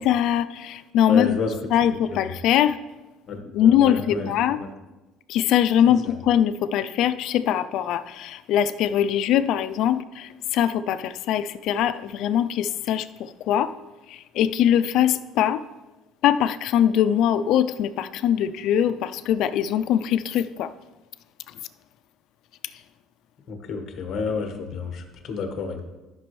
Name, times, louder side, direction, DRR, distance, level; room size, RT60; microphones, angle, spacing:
voice 1, 0.0-1.4 1.7-2.8 3.5-4.6 5.3-13.7 14.1-15.6 16.2-20.7, left 10 dB, 60° left, 12 dB, 0.4 m, -22 dB
voice 2, 1.1-1.5 1.8-2.2 3.3-4.7 5.9-6.2 23.5-25.8, left 5 dB, 40° left, 5 dB, 1.2 m, -30 dB
13.0 x 6.0 x 3.2 m, 1.1 s
cardioid pair, 155°, 0 cm